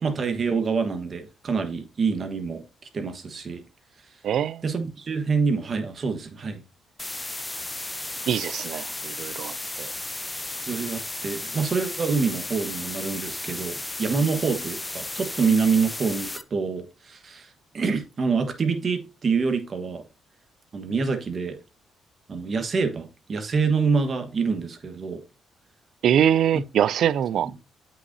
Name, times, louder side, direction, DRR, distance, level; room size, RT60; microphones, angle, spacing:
voice 1, 0.0-2.6 2.9-3.6 4.6-6.6 10.7-20.0 20.7-21.6 22.3-25.2 27.4-27.5, right 5 dB, 45° right, 1.3 m, -26 dB
voice 2, 4.2-4.6 8.3-9.9 26.0-27.5, right 9 dB, 70° right, 0.3 m, -23 dB
sound 1, 7.0-16.4, left 2 dB, 15° left, 0.5 m, -34 dB
8.2 x 5.6 x 2.7 m
cardioid pair, 90°, 0 cm